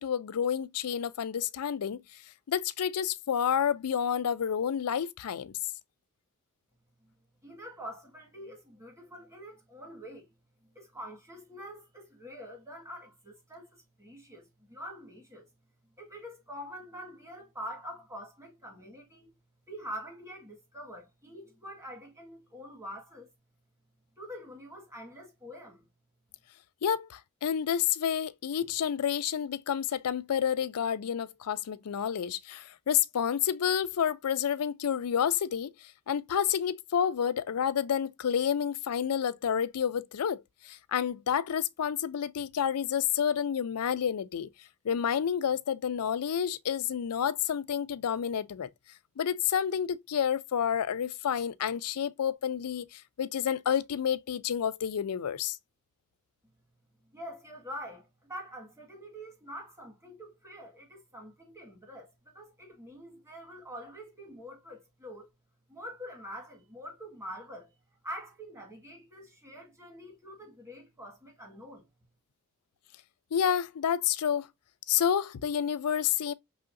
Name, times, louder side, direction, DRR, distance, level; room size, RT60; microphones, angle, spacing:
voice 1, 0.0-2.0 2.5-5.6 26.8-44.5 44.8-48.7 49.2-55.6 73.3-74.5 74.9-76.3, left 8 dB, 80° left, 0.4 m, -29 dB
voice 2, 7.4-10.3 10.7-15.5 16.0-19.4 19.7-23.3 24.2-25.9 57.1-65.3 65.7-67.7 68.0-71.9, equal, 15° right, 1.6 m, -45 dB
5.6 x 3.4 x 2.5 m
head